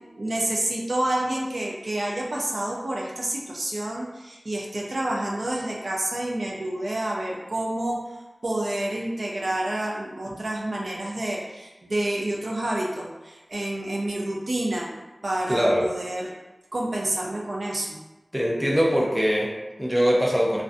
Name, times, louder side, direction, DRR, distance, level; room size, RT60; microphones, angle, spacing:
voice 1, 0.1-8.1 8.4-14.9 15.2-16.3 16.7-18.0, right 1 dB, 70° right, -2 dB, 0.4 m, -28 dB
voice 2, 15.5-15.9 18.3-20.6, equal, ahead, -3 dB, 0.5 m, -22 dB
2.4 x 2.1 x 2.5 m, 1.1 s
wide cardioid pair, 65°, 0 cm